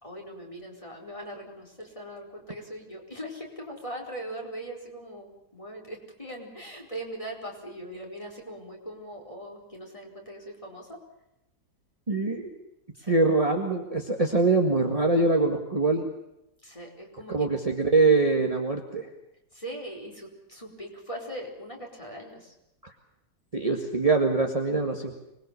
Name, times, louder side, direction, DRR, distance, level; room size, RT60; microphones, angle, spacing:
voice 1, 0.0-10.9 12.9-13.1 14.1-14.2 16.6-17.5 19.5-22.5, right 1 dB, 20° left, 0 dB, 4.6 m, -40 dB
voice 2, 12.1-12.5 13.1-16.0 17.3-19.1 23.5-25.1, right 3 dB, 20° right, 2 dB, 1.9 m, -23 dB
25.5 x 20.5 x 7.0 m, 0.87 s
omnidirectional pair, 1.8 m